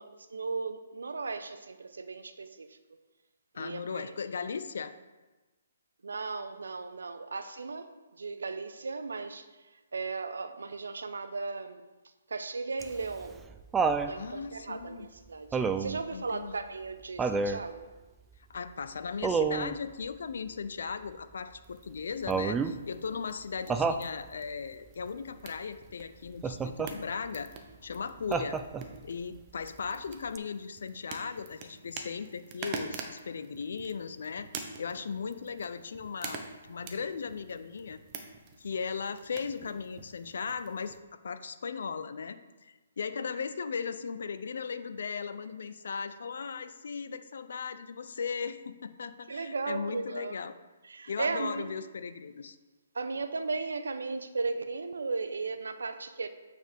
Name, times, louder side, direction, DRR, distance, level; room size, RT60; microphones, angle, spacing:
voice 1, 0.0-2.8 3.5-4.1 6.0-11.9 12.3-13.4 13.9-17.9 49.3-50.4 50.8-51.7 52.9-56.3, right 4 dB, 85° right, 10 dB, 0.6 m, -36 dB
voice 2, 3.5-4.9 14.2-15.1 16.1-16.5 18.5-27.5 27.8-28.6 29.0-34.5 34.8-38.0 38.6-41.0 41.2-50.5 51.1-52.6, left 5 dB, 70° left, 11 dB, 0.5 m, -37 dB
Laughter, 12.8-14.1 15.5-16.0 17.2-17.6 19.2-19.7 22.3-22.8 23.7-24.1 26.4-26.9 28.3-29.0 30.3-30.4, right 5 dB, 10° right, 0.3 m, -29 dB
sound 1, 21.6-41.0, right 5 dB, 30° right, 0.8 m, -47 dB
8.6 x 4.5 x 3.5 m, 1.2 s
hypercardioid pair, 145°, 0 cm